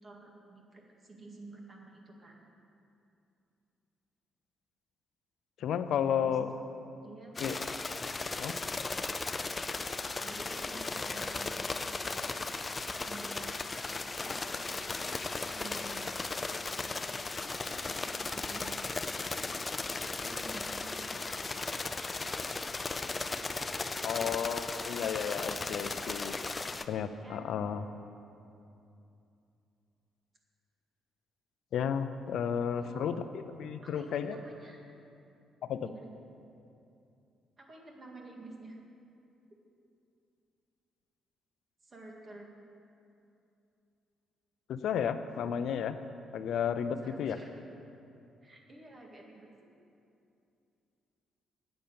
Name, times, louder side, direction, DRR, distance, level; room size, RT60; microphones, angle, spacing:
voice 1, 0.0-2.5 6.2-6.7 7.0-7.3 10.2-11.6 12.1-12.3 13.0-13.5 13.9-15.2 15.5-16.3 16.8-18.8 19.1-19.6 19.9-21.6 26.6-26.9 27.2-27.5 32.8-33.2 33.8-34.8 35.8-36.1 37.6-38.8 41.8-42.5 47.0-47.6 48.4-49.5, right 2 dB, 35° right, 0 dB, 1.9 m, -50 dB
voice 2, 5.6-6.5 7.4-7.6 8.4-8.6 24.0-26.4 26.9-27.8 31.7-34.4 35.6-35.9 44.7-46.0 46.3-47.4, left 8 dB, 75° left, 11 dB, 0.6 m, -32 dB
sound 1, 7.3-26.8, left 3 dB, 25° left, 0.5 m, -36 dB
9.5 x 8.9 x 7.0 m, 2.7 s
cardioid pair, 90°, 0 cm